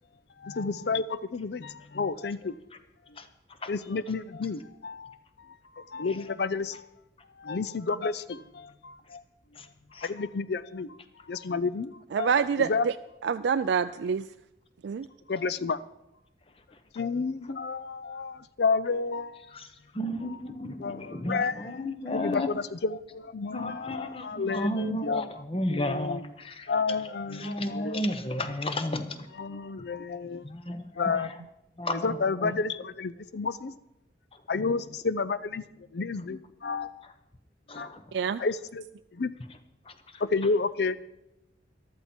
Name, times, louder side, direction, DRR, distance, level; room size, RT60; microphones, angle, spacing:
voice 1, 0.4-2.6 3.7-6.8 7.4-9.2 10.0-11.0 11.3-11.9 12.2-12.3 12.6-12.9 15.3-15.8 16.9-19.4 20.8-21.8 22.1-25.3 25.7-26.3 26.7-28.0 29.4-30.4 30.9-31.3 32.0-33.7 34.5-35.6 35.9-37.0 37.7-37.9 38.4-38.5 39.2-39.3 40.2-41.0, left 4 dB, 60° left, 0.5 m, -31 dB
voice 2, 12.1-12.9 13.2-14.3 14.8-15.1 38.1-38.4, right 6 dB, 75° right, 0.3 m, -26 dB
voice 3, 19.5-22.5 23.5-26.7 27.3-29.3 29.8-29.9 30.4-31.3 31.8-32.5 37.7-38.0 39.9-40.2, left 1 dB, 30° left, 0.9 m, -33 dB
14.0 x 12.5 x 4.4 m
head